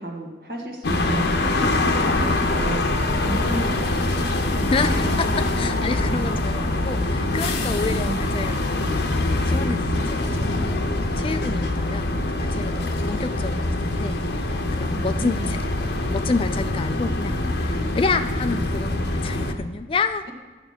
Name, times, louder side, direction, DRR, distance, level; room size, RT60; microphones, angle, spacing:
voice 1, 0.0-2.8 3.2-5.1 7.7-8.1 14.9-15.6, right 1 dB, 55° right, 0 dB, 1.9 m, -33 dB
sound 1, 0.8-19.5, left 2 dB, 80° left, 0.9 m, -24 dB
voice 2, 4.7-20.2, left 4 dB, 30° left, 10 dB, 0.4 m, -29 dB
9.3 x 6.9 x 5.9 m, 1.4 s
head